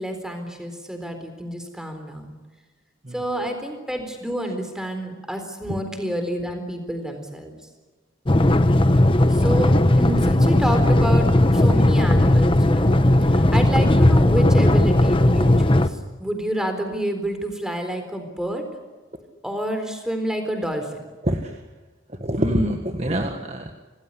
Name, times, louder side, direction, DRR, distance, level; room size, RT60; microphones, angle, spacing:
voice 1, 0.0-2.4 3.1-7.5 9.3-13.0 13.2-18.6 19.4-21.0, equal, 5° right, 6 dB, 4.0 m, -29 dB
voice 2, 3.0-3.6 5.7-5.8 11.6-11.8 13.2-13.4 21.2-21.6 22.1-23.7, equal, 35° right, 4 dB, 1.7 m, -26 dB
sound 1, 8.3-15.9, left 1 dB, 25° left, 1.0 m, -17 dB
27.0 x 19.0 x 10.0 m, 1.3 s
head